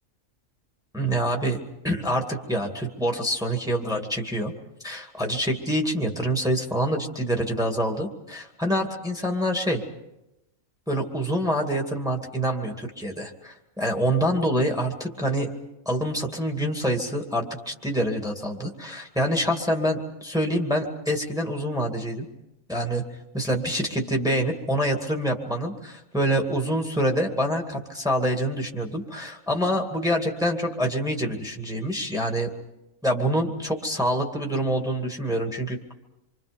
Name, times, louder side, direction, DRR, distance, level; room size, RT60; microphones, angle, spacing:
voice 1, 0.9-4.5 4.8-9.8 10.9-15.5 15.9-22.3 22.7-23.0 23.3-32.5 33.0-35.8, equal, 5° right, 2 dB, 2.2 m, -26 dB
27.5 x 25.0 x 5.3 m, 0.91 s
omnidirectional pair, 1.4 m